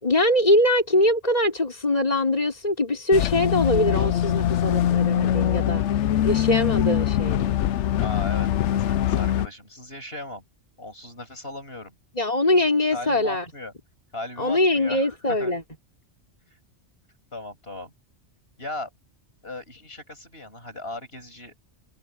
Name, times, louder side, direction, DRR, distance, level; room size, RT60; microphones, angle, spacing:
voice 1, 0.0-5.8 6.2-7.6 12.2-13.4 14.4-15.6, left 1 dB, 35° left, 4.9 m, -22 dB
sound 1, 3.1-9.5, left 11 dB, 90° left, 0.9 m, -23 dB
voice 2, 8.0-10.4 10.8-11.9 12.9-13.7 14.1-15.5 17.3-17.9 18.6-18.9 19.4-21.5, left 2 dB, 60° left, 8.4 m, -37 dB
omnidirectional pair, 1.2 m